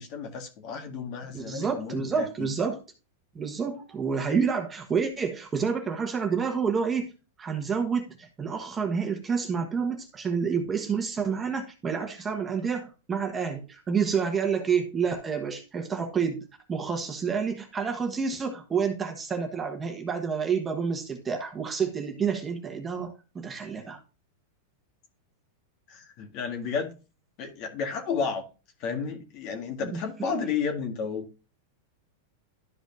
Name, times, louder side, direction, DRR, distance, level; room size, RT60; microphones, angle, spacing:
voice 1, 0.0-2.5 25.9-26.9 27.4-28.4 28.8-31.3, left 6 dB, 45° left, 1.9 m, -32 dB
voice 2, 1.3-2.8 3.3-7.1 7.4-24.0 29.8-30.4, right 6 dB, 20° right, 1.3 m, -29 dB
12.5 x 5.1 x 2.6 m
supercardioid pair, 135°, 0 cm